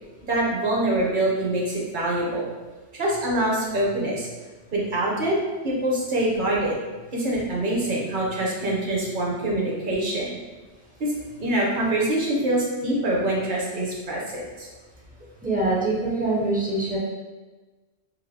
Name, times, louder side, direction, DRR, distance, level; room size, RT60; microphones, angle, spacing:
voice 1, 0.2-2.5 3.0-4.3 4.7-5.4 5.6-6.7 7.1-10.4 11.0-11.1 11.4-14.7, right 1 dB, 50° right, -3 dB, 0.8 m, -25 dB
voice 2, 15.4-17.0, right 2 dB, 15° right, -5 dB, 0.3 m, -24 dB
3.2 x 2.6 x 2.6 m, 1.2 s
omnidirectional pair, 1.2 m